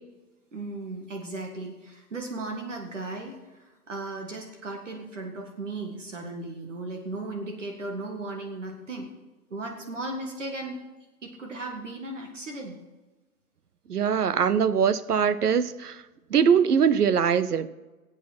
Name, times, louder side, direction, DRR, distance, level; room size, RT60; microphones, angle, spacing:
voice 1, 0.5-9.1 9.5-10.8 11.2-12.8, right 2 dB, 55° right, 1.9 m, -36 dB
voice 2, 13.9-15.9 16.3-17.7, right 7 dB, 85° right, 0.9 m, -22 dB
19.0 x 8.4 x 4.3 m
hypercardioid pair, 180°, 45 cm